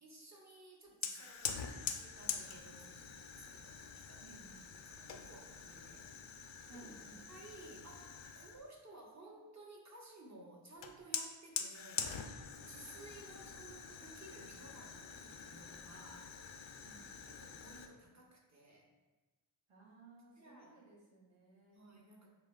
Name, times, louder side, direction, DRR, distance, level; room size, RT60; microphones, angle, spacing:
voice 1, 0.0-4.4 4.8-6.1 6.7-6.9 7.3-12.2 12.7-16.4 17.2-18.9 20.4-20.8 21.7-22.3, right 2 dB, 35° right, -1 dB, 1.2 m, -56 dB
Fire, 1.0-8.7 10.8-17.9, left 7 dB, 65° left, 0.6 m, -45 dB
voice 2, 4.2-4.7 6.7-7.3 16.8-17.1 19.7-21.9, right 3 dB, 80° right, -3 dB, 1.2 m, -59 dB
7.1 x 2.8 x 2.4 m, 1.2 s
cardioid pair, 45°, 50 cm